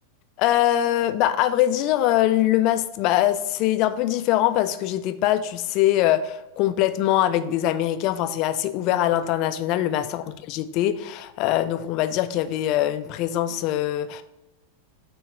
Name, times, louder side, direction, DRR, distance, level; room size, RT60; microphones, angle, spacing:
voice 1, 0.4-14.2, left 13 dB, 40° left, 11 dB, 0.4 m, -23 dB
6.4 x 3.1 x 4.9 m, 0.97 s
figure-of-eight pair, 90°, 0 cm